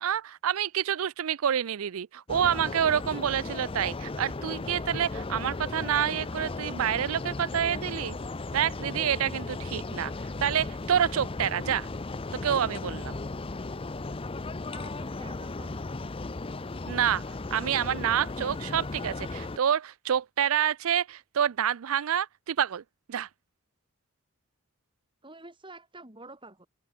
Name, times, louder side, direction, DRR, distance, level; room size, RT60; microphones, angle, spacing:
voice 1, 0.0-8.2 8.5-10.1 10.4-11.9 12.3-13.2 16.9-17.2 17.5-22.8 23.1-23.3, right 9 dB, 75° right, 0.4 m, -28 dB
sound 1, 2.3-19.6, left 3 dB, 25° left, 0.6 m, -36 dB
voice 2, 14.7-15.9 25.2-26.7, right 2 dB, 25° right, 6.3 m, -48 dB
open air
head